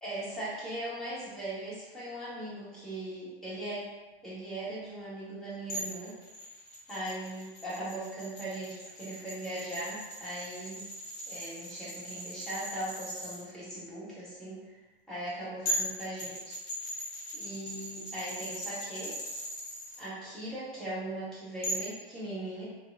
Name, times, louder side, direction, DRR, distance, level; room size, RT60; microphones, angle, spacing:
voice 1, 0.0-3.9 4.2-6.1 6.9-10.9 11.3-14.6 15.1-16.5 17.3-19.2 20.0-22.7, right 1 dB, ahead, -10 dB, 1.3 m, -39 dB
sound 1, 5.7-13.4 15.3-15.4 15.7-20.0 21.6-21.9, equal, 35° left, 1.0 m, -39 dB
3.4 x 2.2 x 2.6 m, 1.1 s
figure-of-eight pair, 90°, 30 cm